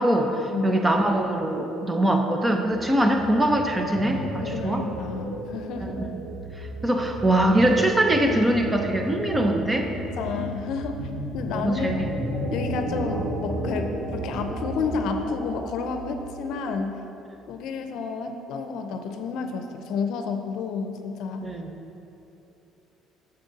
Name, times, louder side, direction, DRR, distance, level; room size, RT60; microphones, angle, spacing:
voice 1, 0.0-4.8 5.8-6.0 6.8-9.9 11.5-12.1 21.4-21.7, right 1 dB, 15° right, 3 dB, 0.8 m, -22 dB
sound 1, 2.6-16.8, right 1 dB, 85° right, 1.8 m, -33 dB
voice 2, 4.1-6.0 10.2-11.1 11.3-12.0 12.5-17.0 17.5-21.5, left 5 dB, 70° left, 6 dB, 0.6 m, -31 dB
7.8 x 6.7 x 4.1 m, 3.0 s
cardioid pair, 105°, 0 cm